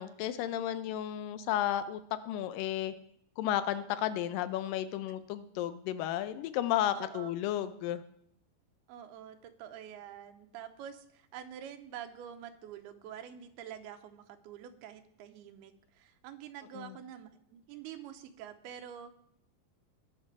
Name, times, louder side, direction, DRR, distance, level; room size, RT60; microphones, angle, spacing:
voice 1, 0.0-2.0 2.3-2.9 3.4-8.0 16.8-16.9, left 12 dB, 80° left, 13 dB, 2.0 m, -33 dB
voice 2, 6.9-7.3 8.9-19.2, right 9 dB, 90° right, 7 dB, 2.8 m, -47 dB
19.5 x 6.8 x 4.7 m, 0.72 s
omnidirectional pair, 4.5 m